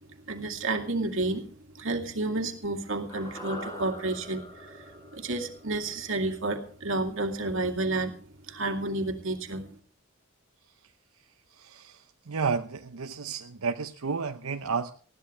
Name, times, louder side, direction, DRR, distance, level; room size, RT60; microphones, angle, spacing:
voice 1, 0.3-1.5 1.7-8.2 8.5-9.7, right 2 dB, 60° right, 4 dB, 2.4 m, -31 dB
sound 1, 3.1-7.4 7.7-7.8, left 1 dB, 15° left, 7.5 m, -44 dB
voice 2, 11.5-14.9, right 5 dB, 90° right, 6 dB, 0.8 m, -32 dB
20.0 x 15.5 x 3.4 m, 0.42 s
head